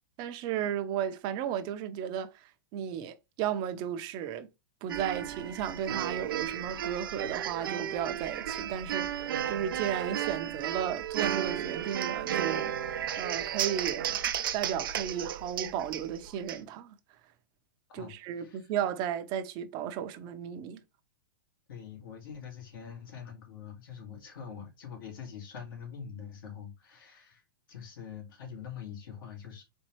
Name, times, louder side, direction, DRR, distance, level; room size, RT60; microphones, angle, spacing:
voice 1, 0.2-4.5 4.8-14.2 14.5-17.0 17.9-20.8, right 9 dB, 40° right, 0.7 m, -34 dB
sound 1, 4.9-16.6, right 10 dB, 80° right, 0.7 m, -34 dB
voice 2, 17.9-18.7 21.7-27.4 27.7-29.6, left 7 dB, 75° left, 2.4 m, -44 dB
4.4 x 3.6 x 3.0 m
hypercardioid pair, 135°, 11 cm